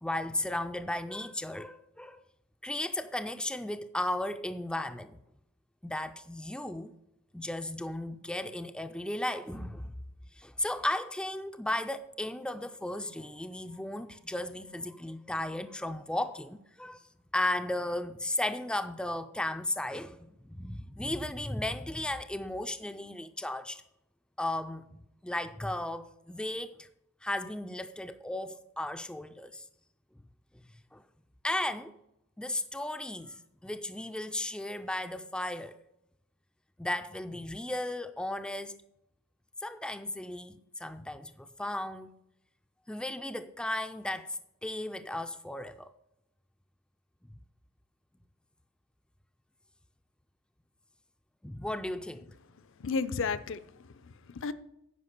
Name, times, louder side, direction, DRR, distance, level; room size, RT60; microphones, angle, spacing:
voice 1, 0.0-2.2 2.6-5.2 5.8-6.9 7.3-9.9 10.3-17.1 17.3-23.8 24.4-26.9 27.2-29.6 30.9-31.0 31.4-31.9 32.4-35.8 36.8-38.8 39.6-42.1 42.9-45.9 51.4-52.3, left 1 dB, 5° left, 0.3 m, -35 dB
voice 2, 52.6-54.5, left 5 dB, 65° left, 0.5 m, -34 dB
9.5 x 5.1 x 6.7 m
head